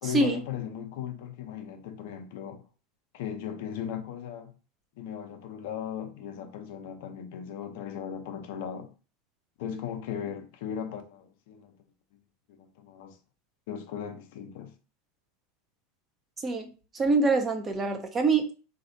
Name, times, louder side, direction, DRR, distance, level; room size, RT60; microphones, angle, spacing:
voice 1, 0.0-2.6 3.1-4.5 5.0-8.9 9.6-11.7 12.5-13.2 13.7-14.7, left 8 dB, 70° left, 0.6 m, -37 dB
voice 2, 16.4-18.5, right 3 dB, 25° right, 0.7 m, -25 dB
3.2 x 2.6 x 2.6 m
hypercardioid pair, 95°, 0 cm